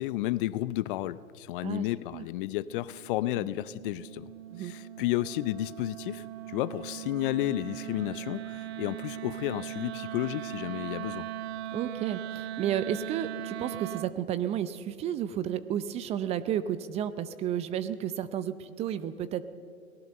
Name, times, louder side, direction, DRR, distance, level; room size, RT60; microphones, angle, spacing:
voice 1, 0.0-4.3 4.6-11.3, left 15 dB, 40° left, 17 dB, 0.7 m, -32 dB
Wind instrument woodwind instrument, 2.7-14.2, right 12 dB, 45° right, 1.0 m, -39 dB
voice 2, 11.7-19.5, right 10 dB, 15° right, 14 dB, 0.5 m, -32 dB
29.0 x 18.5 x 6.7 m, 2.3 s
hypercardioid pair, 115°, 42 cm